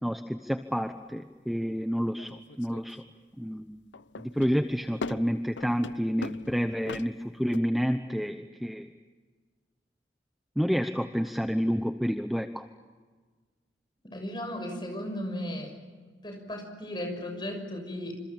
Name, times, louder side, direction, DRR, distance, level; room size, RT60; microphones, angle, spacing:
voice 1, 0.0-3.0 3.4-3.8 4.2-8.9 10.6-12.7, equal, ahead, 7 dB, 0.9 m, -29 dB
sound 1, 2.2-2.9 3.9-7.6, left 4 dB, 80° left, 0.7 m, -40 dB
voice 2, 14.1-15.8 16.2-18.1, left 1 dB, 25° left, 4 dB, 6.4 m, -35 dB
27.5 x 27.5 x 7.3 m, 1.4 s
head